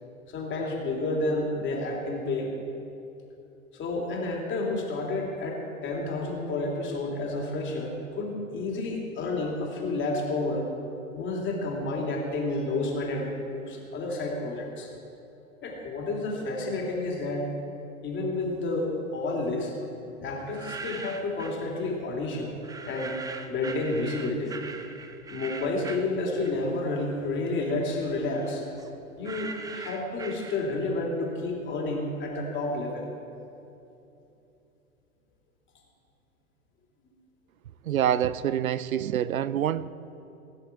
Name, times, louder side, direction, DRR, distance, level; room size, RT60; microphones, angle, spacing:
voice 1, 0.3-2.5 3.7-10.7 11.1-14.9 15.6-17.5 18.0-19.7 20.2-23.2 23.5-24.6 25.3-28.6 29.2-33.1, left 2 dB, 25° left, -1 dB, 3.2 m, -30 dB
sound 1, 20.4-21.6 22.6-26.9 27.2-31.0, right 4 dB, 10° right, 0.6 m, -41 dB
voice 2, 37.9-39.9, right 10 dB, 80° right, 17 dB, 0.6 m, -26 dB
20.0 x 9.6 x 4.6 m, 2.8 s
figure-of-eight pair, 100°, 42 cm